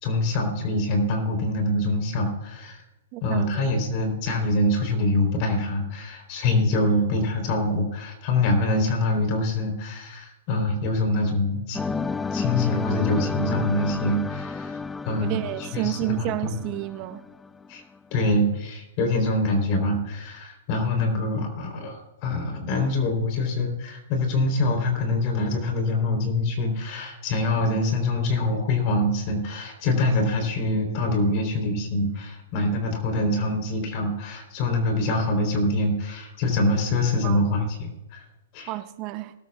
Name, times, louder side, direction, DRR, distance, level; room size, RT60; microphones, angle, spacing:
voice 1, 0.0-2.8 3.2-11.9 12.3-14.8 15.0-16.6 17.7-17.8 18.1-38.2 38.5-38.7, left 2 dB, 40° left, 3.8 m, -25 dB
voice 2, 3.1-3.6 15.2-17.2 37.2-37.4 38.7-39.3, right 17 dB, 35° right, 0.7 m, -30 dB
sound 1, 11.7-17.7, left 5 dB, 10° left, 0.3 m, -31 dB
20.0 x 13.0 x 2.4 m
hypercardioid pair, 145°, 0 cm